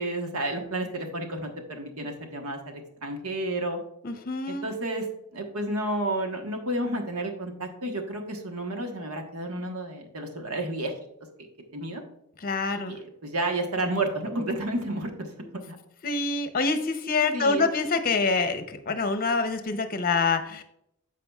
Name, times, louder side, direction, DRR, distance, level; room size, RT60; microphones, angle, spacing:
voice 1, 0.0-3.8 4.5-5.1 5.3-10.9 11.4-11.5 11.7-12.0 12.9-15.3 15.7-15.8 17.3-17.7, right 1 dB, 75° right, 4 dB, 1.3 m, -31 dB
voice 2, 4.0-4.7 12.4-13.0 16.0-20.6, left 4 dB, 40° left, 9 dB, 0.7 m, -26 dB
13.5 x 4.8 x 2.4 m, 0.78 s
head